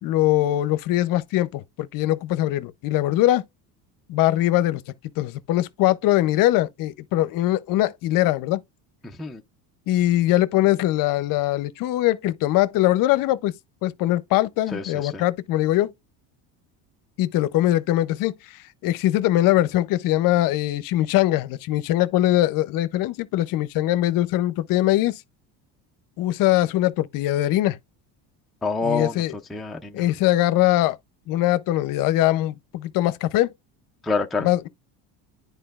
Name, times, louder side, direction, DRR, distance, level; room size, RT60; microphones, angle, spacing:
voice 1, 0.0-3.4 4.1-4.8 5.2-8.6 9.9-13.6 13.8-15.9 17.2-18.4 18.8-25.2 26.2-27.8 28.8-29.3 29.9-31.0 31.3-33.5 34.4-34.7, left 15 dB, 60° left, 0.7 m, -21 dB
voice 2, 9.0-9.4 14.7-15.2 28.6-29.2 29.5-30.0 34.0-34.5, left 3 dB, ahead, 0.4 m, -27 dB
10.0 x 4.5 x 2.4 m
cardioid pair, 140°, 39 cm